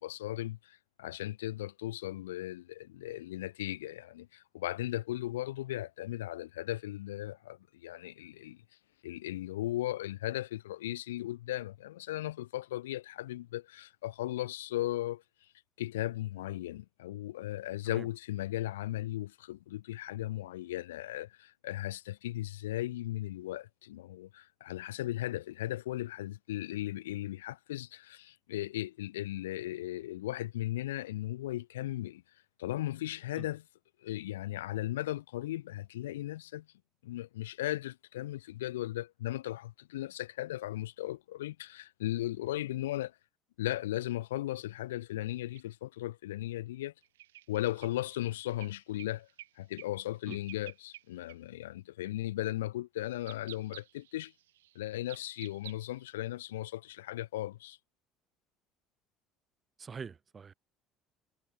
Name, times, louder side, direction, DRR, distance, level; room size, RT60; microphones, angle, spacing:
voice 1, 0.0-8.6 9.0-15.2 15.8-32.2 32.6-33.6 34.0-36.7 37.0-43.1 43.6-46.9 47.5-49.3 49.6-54.3 54.8-57.8, left 15 dB, 90° left, 0.4 m, -37 dB
sound 1, 45.6-45.7 47.0-49.5 49.8-50.0 50.3-51.0 51.3-51.4 52.1-52.3 53.2-56.0, right 14 dB, 90° right, 1.2 m, -51 dB
voice 2, 59.8-60.5, right 6 dB, 35° right, 0.6 m, -44 dB
hypercardioid pair, 70°, 0 cm